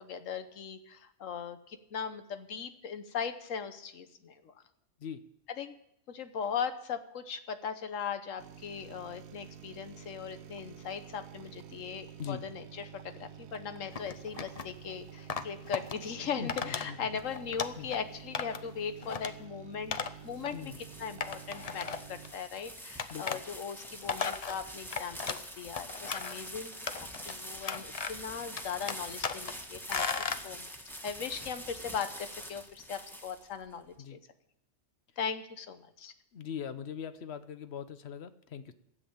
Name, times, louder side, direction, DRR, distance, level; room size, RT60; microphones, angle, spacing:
voice 1, 0.0-4.5 5.6-5.7 6.1-20.0 20.2-30.7 31.0-34.2 35.2-36.1, left 7 dB, 85° left, 10 dB, 1.4 m, -39 dB
sound 1, 8.4-22.3, right 9 dB, 65° right, 0.9 m, -50 dB
sound 2, 13.9-14.7 15.3-15.9 16.5-16.9 17.2-18.0 18.3-18.7 19.0-19.3 19.9-20.1 20.4-20.5 21.2-22.3 23.0-23.4 23.8-25.5 25.8-26.5 26.9-27.3 27.6-28.3 28.6-29.5 29.9-30.4, left 5 dB, 40° left, 0.5 m, -36 dB
voice 2, 16.4-17.0 17.8-17.9 20.5-20.8 23.1-23.4 34.0-34.2 36.3-38.7, left 7 dB, 60° left, 12 dB, 1.0 m, -41 dB
sound 3, 20.2-33.8, equal, ahead, 1.3 m, -45 dB
13.5 x 7.6 x 8.7 m, 0.80 s
omnidirectional pair, 1.3 m